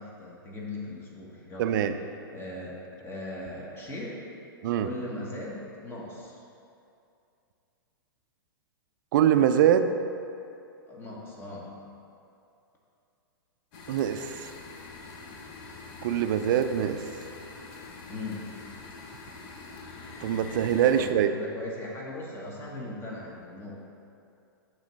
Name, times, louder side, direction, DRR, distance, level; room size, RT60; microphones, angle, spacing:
voice 1, 0.0-1.8 2.3-4.2 4.8-6.4 10.9-11.7 18.1-18.5 20.9-23.8, left 2 dB, 20° left, -4 dB, 1.3 m, -39 dB
voice 2, 1.6-1.9 4.6-4.9 9.1-9.9 13.9-14.5 16.0-17.0 20.2-21.3, right 9 dB, 60° right, 9 dB, 0.4 m, -23 dB
sound 1, 13.7-21.1, left 3 dB, 40° left, 0.8 m, -44 dB
7.3 x 3.1 x 5.3 m, 2.6 s
hypercardioid pair, 125°, 12 cm